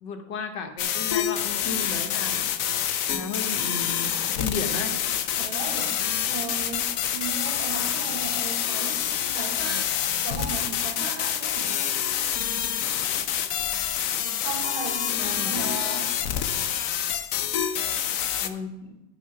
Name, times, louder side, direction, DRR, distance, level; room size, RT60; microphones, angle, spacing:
voice 1, 0.0-2.4 3.1-5.0 15.2-15.8 18.4-19.0, left 4 dB, 65° left, 6 dB, 1.5 m, -34 dB
sound 1, 0.8-18.5, left 9 dB, 80° left, 0.7 m, -27 dB
voice 2, 5.4-5.9 6.3-9.9 10.2-11.7 14.4-16.1, right 4 dB, 85° right, 2 dB, 2.5 m, -36 dB
10.5 x 6.0 x 5.7 m, 1.0 s
omnidirectional pair, 2.2 m